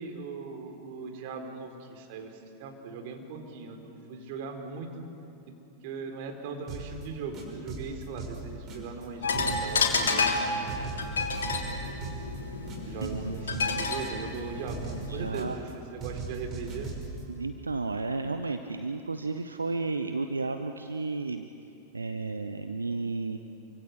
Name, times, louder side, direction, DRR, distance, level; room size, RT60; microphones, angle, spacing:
voice 1, 0.0-5.1 5.8-10.5 10.8-11.2 12.9-15.6 15.9-16.9, right 4 dB, 50° right, 4 dB, 4.0 m, -39 dB
sound 1, 6.7-7.0 7.3-9.0 9.3-10.4 10.7-12.4 12.7-14.4 14.7-15.7 16.0-17.2, right 4 dB, 30° right, 5.9 m, -39 dB
sound 2, 9.2-15.3, left 4 dB, 65° left, 3.5 m, -30 dB
voice 2, 13.0-13.8 15.1-15.6 17.3-21.5 21.9-23.4, right 3 dB, 80° right, 8 dB, 1.0 m, -33 dB
28.5 x 25.0 x 8.4 m, 2.8 s
figure-of-eight pair, 90°, 0 cm